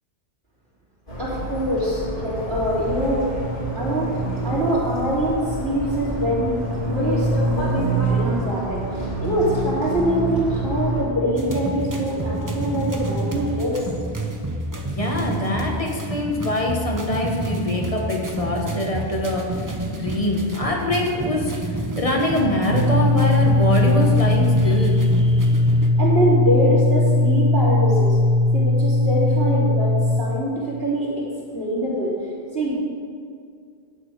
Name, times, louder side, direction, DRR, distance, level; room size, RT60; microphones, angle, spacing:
sound 1, 1.1-11.0, right 1 dB, 55° left, 3.2 m, -26 dB
voice 1, 1.2-3.3 3.7-4.1 4.4-8.8 9.2-13.8 26.0-28.2 28.5-31.2 31.5-32.1 32.5-32.7, equal, 70° right, -7 dB, 3.5 m, -24 dB
sound 2, 11.3-25.9, right 1 dB, 20° right, 0.7 m, -29 dB
voice 2, 14.9-19.7 20.0-21.5 22.0-25.0, left 1 dB, 35° left, -1 dB, 1.4 m, -24 dB
sound 3, 22.7-30.2, left 2 dB, 55° right, 1.0 m, -18 dB
11.0 x 8.6 x 4.7 m, 2.2 s
omnidirectional pair, 1.1 m